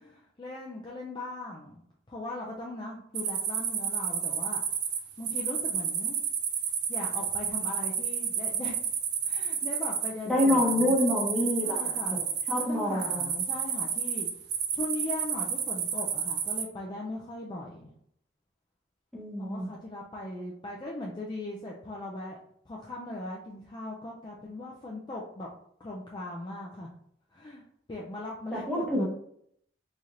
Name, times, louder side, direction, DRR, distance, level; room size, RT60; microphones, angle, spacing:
voice 1, 0.0-1.8 2.1-4.6 5.2-6.2 6.9-8.8 9.2-11.0 11.6-12.2 12.6-14.3 14.7-17.9 19.4-22.4 22.7-25.5 25.8-26.9 27.3-27.6 27.9-29.0, left 2 dB, 25° left, -3 dB, 0.4 m, -39 dB
sound 1, 3.2-16.6, right 8 dB, 60° right, 0.5 m, -31 dB
voice 2, 10.3-12.2 12.5-13.4 19.1-19.7 28.5-29.0, left 1 dB, 5° left, -5 dB, 1.0 m, -27 dB
4.2 x 3.1 x 2.5 m, 0.70 s
head